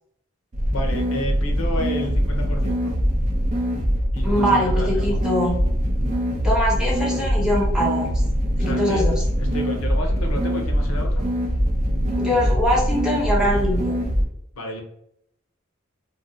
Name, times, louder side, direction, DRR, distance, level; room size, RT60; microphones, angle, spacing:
sound 1, 0.5-14.2, equal, 35° right, 0.5 m, -22 dB
voice 1, 0.7-3.0 4.1-5.2 8.6-9.1 9.4-11.3 14.5-14.8, equal, 85° left, 2 dB, 0.6 m, -31 dB
voice 2, 4.2-5.5 6.4-8.1 8.6-9.2 12.2-14.0, equal, 5° right, -5 dB, 0.9 m, -22 dB
2.6 x 2.1 x 3.6 m, 0.75 s
head